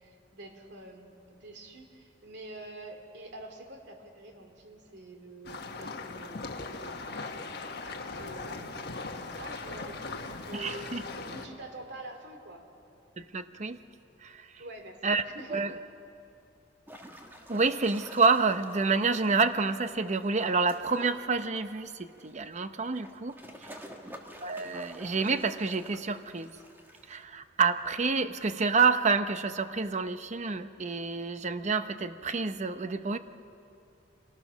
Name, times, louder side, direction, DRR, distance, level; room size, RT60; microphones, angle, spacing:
voice 1, 0.0-7.2 8.2-8.9 9.4-10.9 11.2-12.6 14.6-15.8 23.8-24.1, right 1 dB, 65° right, 4 dB, 2.6 m, -46 dB
sound 1, 5.4-11.5, left 3 dB, 60° left, 1.4 m, -39 dB
voice 2, 10.5-11.0 13.2-13.8 14.2-14.5 15.0-15.2 15.5-15.7 17.5-23.3 24.4-26.6 27.1-33.2, right 4 dB, 40° right, 11 dB, 0.7 m, -28 dB
sound 2, 16.9-27.2, equal, 10° right, 1.7 m, -49 dB
27.0 x 19.0 x 6.2 m, 2.7 s
head